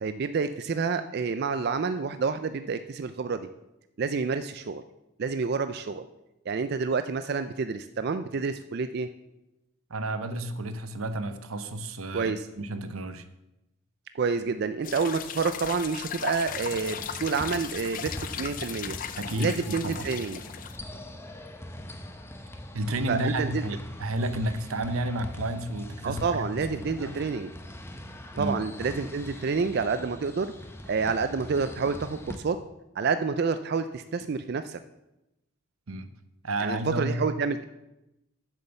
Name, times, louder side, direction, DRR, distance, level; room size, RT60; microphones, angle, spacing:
voice 1, 0.0-3.5 4.0-4.8 5.2-6.1 6.5-9.1 12.1-12.4 14.1-19.0 19.4-20.4 23.1-23.6 26.0-27.5 28.3-30.5 30.9-32.6 33.0-34.8 36.6-37.6, right 5 dB, 50° right, 10 dB, 0.4 m, -28 dB
voice 2, 9.9-13.3 19.2-20.1 22.7-27.1 28.4-28.6 35.9-36.1 36.4-37.3, right 1 dB, 90° right, 11 dB, 0.9 m, -31 dB
sound 1, 14.8-20.8, left 9 dB, 40° left, 0.4 m, -37 dB
sound 2, 16.5-32.3, left 1 dB, 10° left, 0.7 m, -42 dB
8.3 x 7.0 x 6.7 m, 0.92 s
head